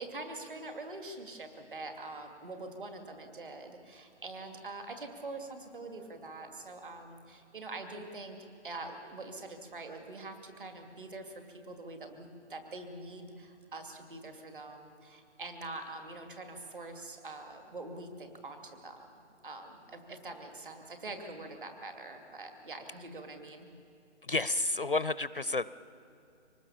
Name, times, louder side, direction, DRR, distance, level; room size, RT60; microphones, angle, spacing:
voice 1, 0.0-8.4 8.6-19.1 19.4-23.7, right 2 dB, 45° right, 5 dB, 2.7 m, -44 dB
voice 2, 24.2-25.7, left 2 dB, 50° left, 17 dB, 0.5 m, -31 dB
25.0 x 19.5 x 7.3 m, 2.7 s
hypercardioid pair, 175°, 36 cm